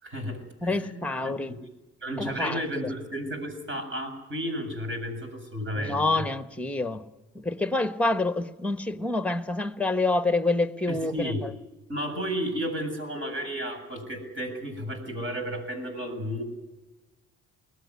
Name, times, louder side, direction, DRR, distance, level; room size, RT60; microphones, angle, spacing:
voice 1, 0.0-1.6 2.0-6.3 10.9-11.4 11.9-16.4, equal, 40° right, 7.4 m, -33 dB
voice 2, 0.6-1.5 2.2-2.9 5.7-7.0 7.3-11.5, left 2 dB, 5° left, 1.3 m, -27 dB
22.0 x 19.5 x 9.6 m
cardioid pair, 90°, 30 cm